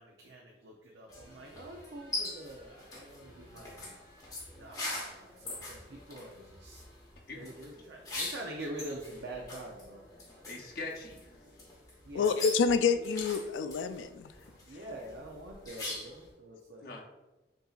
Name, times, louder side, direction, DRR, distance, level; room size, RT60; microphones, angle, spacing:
voice 1, 0.0-4.0 4.5-6.8 7.3-10.0 12.0-12.4 14.7-17.0, right 1 dB, 80° right, 0 dB, 0.5 m, -45 dB
sound 1, 1.1-16.3, left 2 dB, 20° left, 1.0 m, -43 dB
voice 2, 10.5-11.3 16.8-17.0, left 3 dB, 55° left, -2 dB, 0.6 m, -42 dB
voice 3, 12.2-14.3, left 5 dB, 90° left, 10 dB, 0.3 m, -28 dB
6.6 x 2.7 x 2.4 m, 1.1 s
head